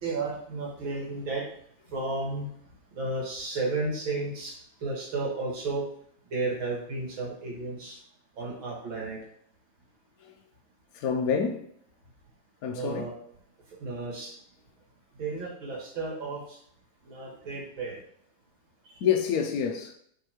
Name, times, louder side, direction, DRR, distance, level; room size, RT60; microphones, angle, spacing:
voice 1, 0.0-1.4 1.9-2.5 2.9-4.5 4.8-5.8 6.3-8.0 8.4-9.2 12.7-13.1 13.8-14.3 15.2-16.6 17.0-18.0, right 3 dB, 80° right, 2.7 m, -33 dB
voice 2, 10.9-11.7 12.6-13.0 19.0-19.9, left 7 dB, 70° left, 0.9 m, -27 dB
7.8 x 3.9 x 3.1 m
omnidirectional pair, 2.1 m